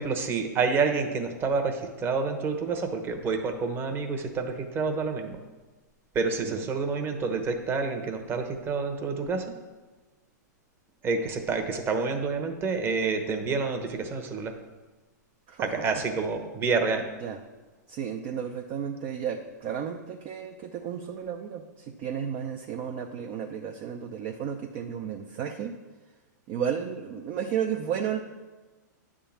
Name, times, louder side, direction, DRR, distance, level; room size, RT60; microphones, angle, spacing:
voice 1, 0.0-5.4 6.1-9.5 11.0-14.5 15.6-17.0, right 4 dB, 20° right, 5 dB, 1.0 m, -28 dB
voice 2, 17.9-25.7 26.5-28.2, right 8 dB, 40° right, 3 dB, 0.6 m, -33 dB
10.0 x 3.7 x 7.2 m, 1.2 s
hypercardioid pair, 135°, 10 cm